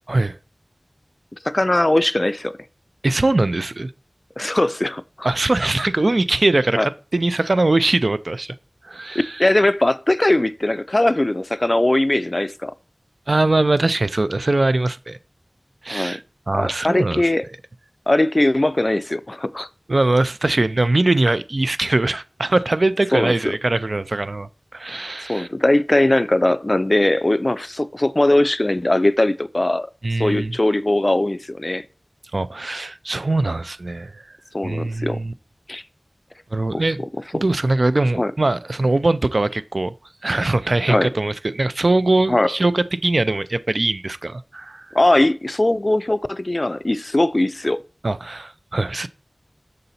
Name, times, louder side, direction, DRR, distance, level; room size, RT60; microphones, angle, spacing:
voice 1, 1.4-2.5 4.4-5.3 6.8-6.9 9.4-12.7 15.9-16.2 16.5-17.5 18.1-19.7 23.1-23.3 25.3-29.9 30.2-31.9 34.5-35.2 35.7-35.8 36.7-36.8 37.3-37.4 38.1-38.3 40.9-41.1 42.3-42.5 44.9-47.8, left 1 dB, 40° left, 0.4 m, -20 dB
voice 2, 3.0-3.9 5.2-8.5 8.8-9.4 13.3-15.2 15.8-17.2 19.9-25.5 30.0-30.6 32.3-34.2 34.6-35.3 36.5-37.0 37.3-39.9 40.2-44.9 48.0-49.1, right 2 dB, 65° right, 0.4 m, -21 dB
6.6 x 3.9 x 4.1 m
wide cardioid pair, 45°, 0 cm